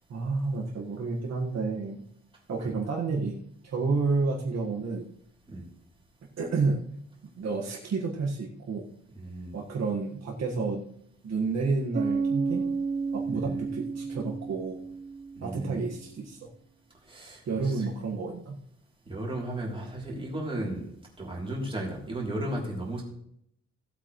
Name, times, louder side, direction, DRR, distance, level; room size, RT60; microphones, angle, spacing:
voice 1, 0.1-2.0 2.5-5.1 6.4-7.0 7.2-8.8 9.5-10.8 11.2-12.7 13.1-14.8 15.4-16.5 17.5-18.6, right 4 dB, 65° right, -2 dB, 1.8 m, -30 dB
voice 2, 9.2-9.5 13.3-13.7 15.4-15.8 17.1-17.9 19.1-20.8 21.2-23.0, right 1 dB, 20° right, -3 dB, 3.4 m, -35 dB
Bass guitar, 11.9-15.8, right 4 dB, 35° right, 0.9 m, -31 dB
17.0 x 8.2 x 3.2 m, 0.70 s
wide cardioid pair, 170°, 29 cm